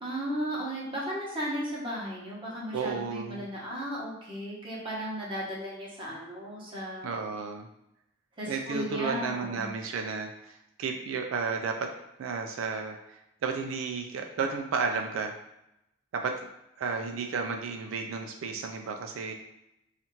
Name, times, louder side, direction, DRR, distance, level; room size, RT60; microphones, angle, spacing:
voice 1, 0.0-7.1 8.4-9.7, equal, 25° right, -6 dB, 1.0 m, -35 dB
voice 2, 2.7-3.5 7.0-7.7 8.4-11.9 12.2-15.3 16.1-16.4 16.8-19.3, right 5 dB, 75° right, 4 dB, 0.4 m, -33 dB
2.8 x 2.4 x 4.2 m, 0.85 s
head